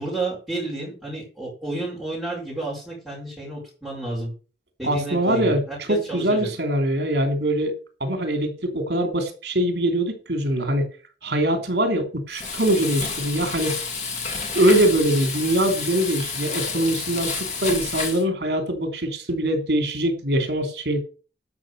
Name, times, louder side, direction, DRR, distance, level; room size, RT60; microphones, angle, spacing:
voice 1, 0.0-4.3 4.8-6.5, right 2 dB, 5° right, 5.0 m, -31 dB
voice 2, 4.8-7.7 8.0-10.9 11.2-13.8 14.5-21.0, right 1 dB, 75° right, 3.3 m, -23 dB
Frying (food), 12.3-18.2, left 5 dB, 40° left, 2.2 m, -30 dB
12.0 x 6.1 x 6.6 m
head